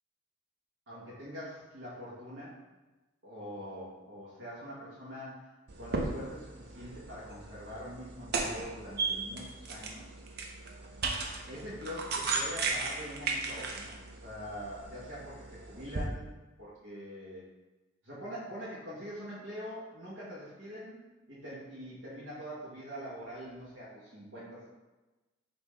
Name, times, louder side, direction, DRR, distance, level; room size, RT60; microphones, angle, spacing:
voice 1, 0.9-2.5 3.2-5.4 5.8-10.1 11.5-17.4 18.0-21.0 21.3-24.7, equal, 85° right, -9 dB, 1.3 m, -44 dB
sound 1, 5.7-16.0, right 3 dB, 55° right, 0.5 m, -36 dB
5.4 x 2.8 x 3.2 m, 1.1 s
head